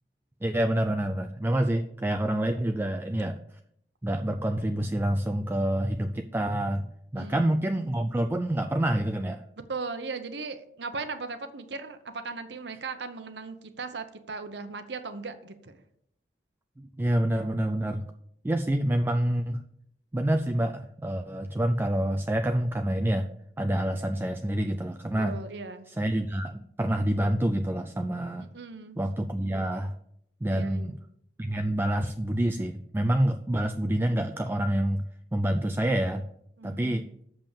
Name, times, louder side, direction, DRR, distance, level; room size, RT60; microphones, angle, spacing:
voice 1, 0.4-3.4 4.0-6.9 7.1-9.4 16.8-18.0 18.4-19.6 20.1-23.3 23.6-25.4 25.9-28.5 29.0-29.9 30.4-31.0 31.4-35.0 35.3-36.3 36.6-37.1, right 1 dB, 10° right, 7 dB, 0.3 m, -27 dB
voice 2, 7.1-7.6 9.7-15.8 25.2-25.9 28.4-29.0 30.5-30.9 36.6-37.1, right 4 dB, 70° right, 9 dB, 0.8 m, -38 dB
7.0 x 5.5 x 7.3 m, 0.73 s
head